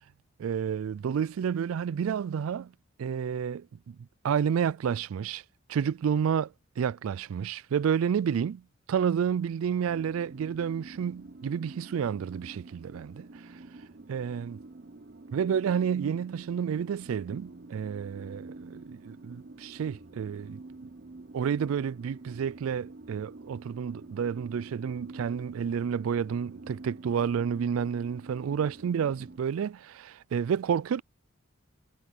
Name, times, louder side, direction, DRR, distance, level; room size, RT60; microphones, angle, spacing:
voice 1, 0.4-2.7 3.0-4.0 4.2-5.4 5.7-8.6 8.9-13.6 14.1-14.6 15.3-20.6 21.3-31.0, right 7 dB, 90° right, 0.3 m, -30 dB
sound 1, 9.8-29.4, right 2 dB, 50° right, 0.7 m, -48 dB
head